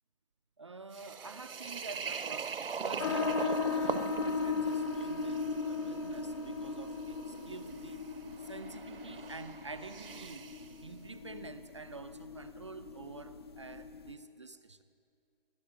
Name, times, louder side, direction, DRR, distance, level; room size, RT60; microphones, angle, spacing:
voice 1, 0.6-2.5 2.8-10.5 10.8-14.8, right 3 dB, 30° right, 10 dB, 0.4 m, -48 dB
sound 1, 0.9-10.7, right 6 dB, 70° right, 0.8 m, -42 dB
sound 2, 3.0-14.1, left 4 dB, 25° left, 0.6 m, -37 dB
15.5 x 9.4 x 9.8 m, 2.4 s
figure-of-eight pair, 155°, 29 cm